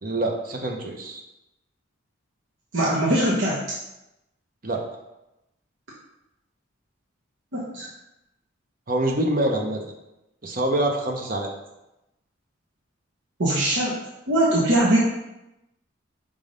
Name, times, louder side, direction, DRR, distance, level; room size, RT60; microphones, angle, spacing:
voice 1, 0.0-1.2 4.6-4.8 8.9-9.8 10.4-11.5, right 1 dB, 45° right, 1 dB, 0.8 m, -25 dB
voice 2, 2.7-3.6 7.5-7.9 13.4-14.0 14.3-15.0, right 1 dB, 70° right, -6 dB, 1.1 m, -21 dB
5.0 x 3.7 x 5.1 m, 0.93 s
head